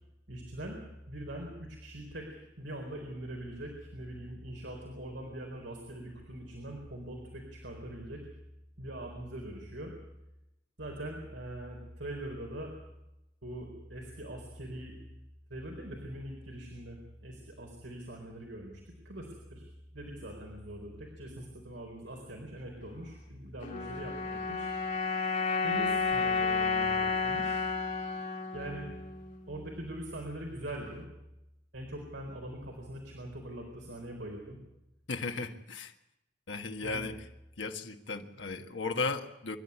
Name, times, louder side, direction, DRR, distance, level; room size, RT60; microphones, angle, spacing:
voice 1, 0.3-0.8 1.1-8.2 8.8-9.9 10.8-12.7 13.4-14.9 15.5-24.7 25.6-27.6 28.5-29.0 29.5-31.1 31.7-34.6 36.8-37.1, right 1 dB, 75° right, 1 dB, 4.4 m, -42 dB
sound 1, 23.6-30.0, left 4 dB, 45° left, 2.6 m, -32 dB
voice 2, 35.1-35.9 36.5-37.2 37.6-39.6, left 3 dB, 85° left, 4 dB, 1.6 m, -35 dB
26.0 x 11.5 x 9.9 m, 0.92 s
head